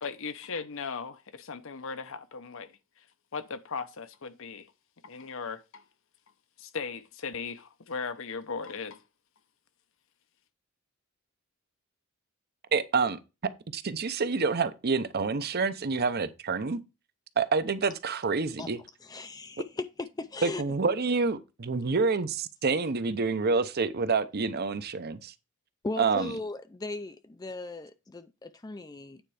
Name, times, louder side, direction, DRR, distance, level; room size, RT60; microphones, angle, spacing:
voice 1, 0.0-3.1 3.3-4.7 5.0-5.8 6.6-9.0, left 5 dB, 65° left, 0.8 m, -38 dB
voice 2, 12.7-13.2 13.7-16.8 17.4-18.8 20.4-25.3 26.0-26.3, right 4 dB, 50° right, 0.7 m, -27 dB
voice 3, 19.0-20.6 25.8-29.2, left 2 dB, 20° left, 0.4 m, -37 dB
9.1 x 4.4 x 4.9 m
head